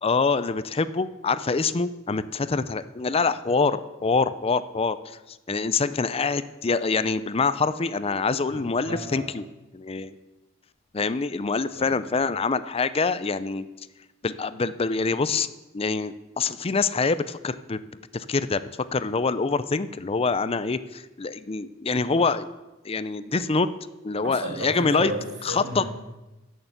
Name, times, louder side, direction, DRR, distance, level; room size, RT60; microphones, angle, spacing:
voice 1, 0.0-5.0 5.5-9.4 9.7-10.1 10.9-13.7 14.2-15.5 15.7-17.8 18.1-18.6 18.9-22.5 22.8-23.7 24.0-25.1 25.4-25.8, left 4 dB, 30° left, 14 dB, 0.5 m, -25 dB
voice 2, 8.5-9.3 11.7-12.0 24.2-25.9, right 1 dB, 75° right, 0 dB, 6.2 m, -33 dB
14.5 x 6.6 x 8.1 m, 1.0 s
head